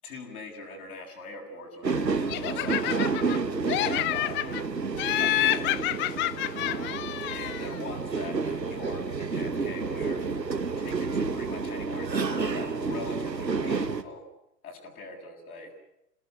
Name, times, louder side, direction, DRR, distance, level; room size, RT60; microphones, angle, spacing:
voice 1, 0.0-3.4 3.8-4.7 5.2-5.9 6.5-7.0 7.3-10.2 10.8-14.2 14.6-15.8, left 3 dB, 65° left, -1 dB, 7.5 m, -42 dB
sound 1, 1.8-14.0, right 4 dB, 85° right, 1.7 m, -30 dB
Laughter, 2.3-3.4 3.7-4.6 5.0-7.8, left 15 dB, 25° left, 0.9 m, -28 dB
28.0 x 18.5 x 9.7 m, 0.87 s
figure-of-eight pair, 100°, 49 cm